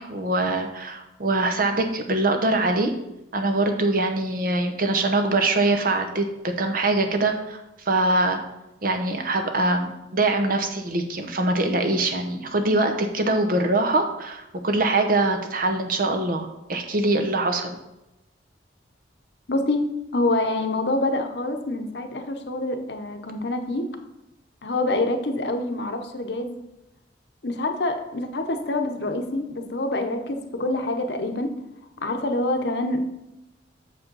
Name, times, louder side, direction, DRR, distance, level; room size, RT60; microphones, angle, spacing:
voice 1, 0.0-2.9 3.3-7.6 7.9-8.4 8.8-17.8, right 2 dB, 50° right, 5 dB, 0.9 m, -23 dB
voice 2, 19.5-19.8 20.1-23.9 24.6-26.6 27.4-31.5 32.0-33.0, left 2 dB, 60° left, 6 dB, 0.9 m, -26 dB
6.9 x 5.1 x 5.4 m, 0.93 s
head